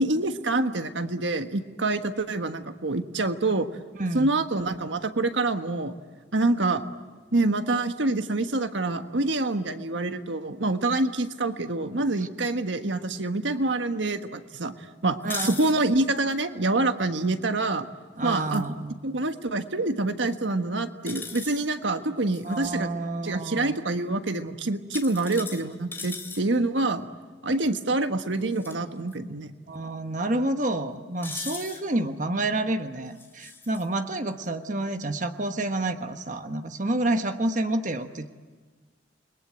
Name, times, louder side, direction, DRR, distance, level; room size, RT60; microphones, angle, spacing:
voice 1, 0.0-3.7 4.1-5.9 6.3-6.8 7.3-14.7 15.0-17.9 18.2-18.6 19.0-22.9 23.2-27.1 27.4-29.5, right 2 dB, 85° right, 8 dB, 1.4 m, -26 dB
sound 1, 15.2-15.7 18.3-18.7 21.1-21.7 22.3-22.7 24.9-26.4 28.5-28.7 29.1-29.2 31.2-31.8 33.2-33.9, left 4 dB, 10° left, 2.7 m, -38 dB
voice 2, 15.2-15.6 18.2-18.9 22.4-23.8 29.7-38.3, right 2 dB, 45° right, 7 dB, 1.3 m, -29 dB
29.5 x 22.0 x 8.8 m, 1.4 s
head